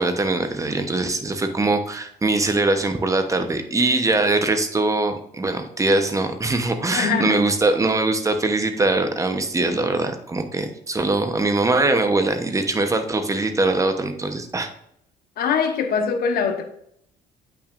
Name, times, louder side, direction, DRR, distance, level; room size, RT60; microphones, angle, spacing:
voice 1, 0.0-14.7, right 2 dB, 20° right, 7 dB, 0.9 m, -22 dB
voice 2, 6.9-7.5 15.4-16.6, left 6 dB, 65° left, 6 dB, 1.1 m, -22 dB
8.6 x 5.9 x 2.5 m, 0.71 s
cardioid pair, 110°, 17 cm